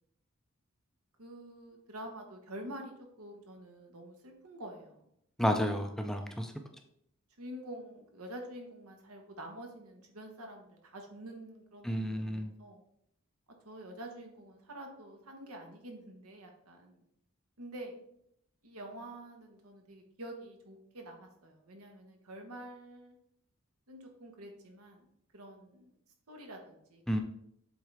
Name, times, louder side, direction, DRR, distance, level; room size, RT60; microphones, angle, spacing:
voice 1, 1.2-5.1 7.4-12.8 13.6-17.0 17.6-17.9 18.6-23.1 23.9-25.1 25.3-25.9 26.3-27.2, right 1 dB, 90° right, 3 dB, 1.2 m, -47 dB
voice 2, 5.4-6.5 11.8-12.5 27.1-27.2, equal, ahead, 5 dB, 0.4 m, -31 dB
7.8 x 3.7 x 3.3 m, 0.74 s
head